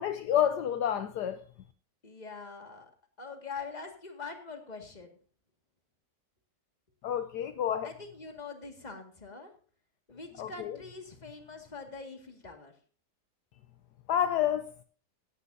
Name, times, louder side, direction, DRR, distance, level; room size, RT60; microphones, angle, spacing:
voice 1, 0.0-1.4 7.0-7.9 10.4-10.8 14.1-14.7, left 10 dB, 70° left, 1.2 m, -29 dB
voice 2, 2.0-2.9 3.2-5.2 7.8-9.5 10.1-12.7, left 4 dB, 25° left, 2.1 m, -44 dB
17.0 x 11.5 x 2.7 m
omnidirectional pair, 1.9 m